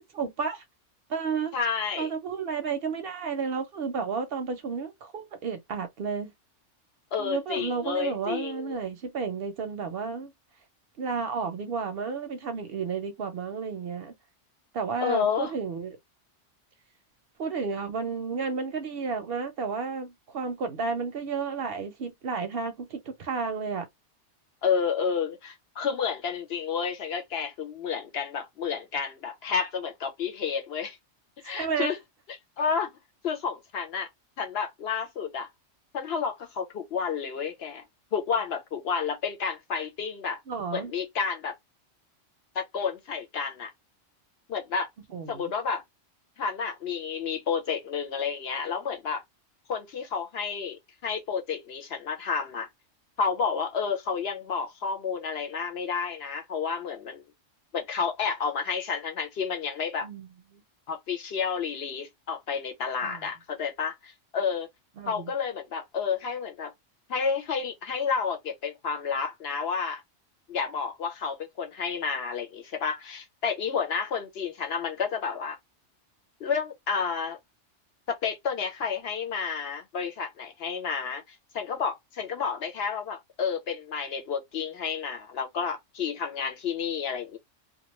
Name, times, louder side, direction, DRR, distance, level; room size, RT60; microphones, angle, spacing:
voice 1, 0.1-0.6 1.1-1.6 2.0-6.3 7.2-10.3 11.0-14.1 14.7-16.0 17.4-23.9 31.4-31.9 40.5-40.9 45.1-45.5 60.0-60.6 63.0-63.3 65.0-65.3, right 5 dB, 65° right, 0.7 m, -32 dB
voice 2, 1.5-2.1 7.1-8.8 15.0-15.5 24.6-31.0 31.4-32.0 32.3-32.9 33.2-34.1 34.4-35.5 35.9-37.8 38.1-40.4 40.7-41.6 42.5-43.7 44.5-44.9 45.3-45.8 46.4-49.2 49.7-52.7 53.2-57.2 57.7-60.1 60.9-64.7 65.1-66.7 67.1-70.0 70.5-75.6 76.4-77.4 78.1-87.4, left 6 dB, 65° left, 0.8 m, -30 dB
2.4 x 2.2 x 2.9 m
omnidirectional pair, 1.2 m